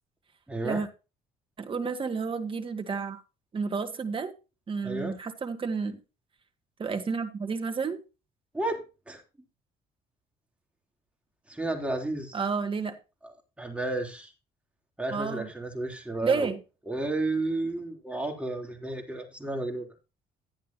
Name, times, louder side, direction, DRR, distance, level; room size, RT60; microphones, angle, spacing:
voice 1, 0.5-0.8 4.8-5.1 8.5-9.2 11.5-12.4 13.2-14.3 15.0-16.5 16.8-19.9, right 2 dB, 5° right, 3.4 m, -32 dB
voice 2, 1.6-3.2 3.5-4.3 4.7-6.0 6.8-8.0 12.3-13.0 15.1-15.5 16.2-16.6, right 5 dB, 30° right, 1.9 m, -30 dB
12.0 x 10.0 x 2.8 m
cardioid pair, 110°, 17 cm